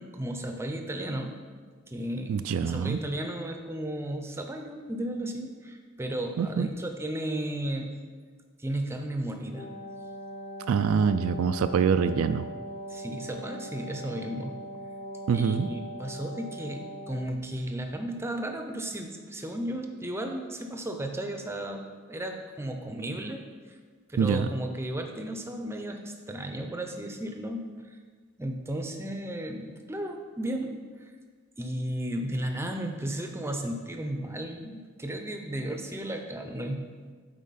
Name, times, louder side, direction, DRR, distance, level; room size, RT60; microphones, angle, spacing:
voice 1, 0.0-1.4 1.9-8.0 8.6-9.7 12.9-14.6 15.3-23.8 24.1-28.0 28.4-30.8 31.6-36.8, right 1 dB, 10° right, 4 dB, 0.6 m, -34 dB
voice 2, 2.3-3.0 6.4-6.7 10.7-12.4 15.3-15.7 24.2-24.4, right 6 dB, 75° right, 11 dB, 0.3 m, -25 dB
Wind instrument woodwind instrument, 9.4-17.4, equal, 30° left, 0.8 m, -41 dB
8.3 x 4.7 x 4.1 m, 1.5 s
head